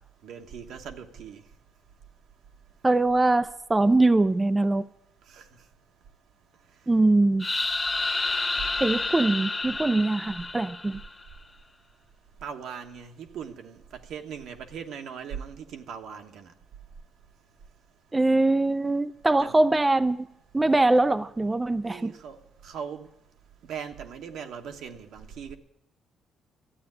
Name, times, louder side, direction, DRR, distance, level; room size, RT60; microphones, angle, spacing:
voice 1, 0.2-1.4 5.3-5.4 12.4-16.5 19.4-19.6 21.8-22.4 22.6-23.1 23.7-25.6, right 7 dB, 80° right, 1.3 m, -39 dB
voice 2, 2.8-4.9 6.9-7.5 8.8-11.0 18.1-20.3 20.5-22.1, right 2 dB, 20° right, 0.5 m, -22 dB
sound 1, 7.4-11.2, left 3 dB, 20° left, 1.3 m, -29 dB
13.0 x 8.8 x 9.5 m
cardioid pair, 90°, 0 cm